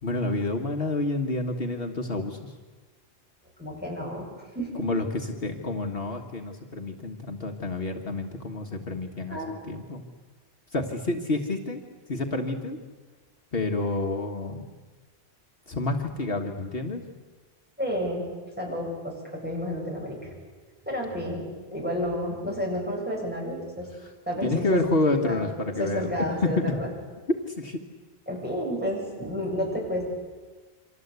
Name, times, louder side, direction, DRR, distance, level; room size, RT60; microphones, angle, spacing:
voice 1, 0.0-2.6 4.8-10.0 10.7-11.8 12.1-12.8 13.5-14.7 15.7-17.0 24.0-24.1 24.4-26.1 26.4-26.5 27.5-27.8, left 2 dB, 60° left, 3 dB, 1.8 m, -29 dB
voice 2, 3.6-4.3 4.5-5.0 9.3-9.6 17.8-18.3 18.6-20.3 20.8-21.4 21.7-23.9 24.3-25.4 25.8-26.9 28.3-30.1, equal, 10° right, -2 dB, 7.7 m, -31 dB
28.5 x 25.0 x 8.2 m, 1.3 s
omnidirectional pair, 1.1 m